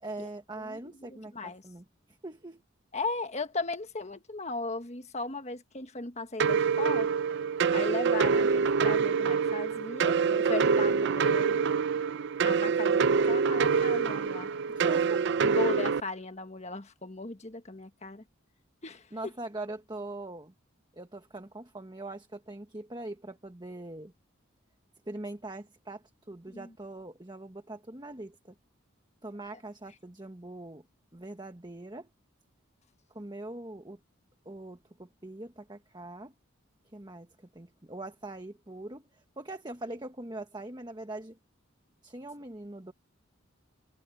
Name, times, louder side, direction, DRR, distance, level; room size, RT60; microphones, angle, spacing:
voice 1, 0.0-2.6 14.7-15.3 19.1-20.5 20.9-24.1 25.1-28.5 29.2-30.9 31.1-32.1 33.1-34.0 34.4-36.3 36.9-41.4 42.0-42.9, right 2 dB, 20° right, 1.3 m, -42 dB
voice 2, 0.6-1.6 2.9-7.1 7.7-11.7 12.0-12.1 12.4-14.5 15.4-18.2 18.8-19.0 26.5-26.7, left 3 dB, 35° left, 1.5 m, -37 dB
sound 1, 6.4-16.0, right 5 dB, 60° right, 0.4 m, -26 dB
head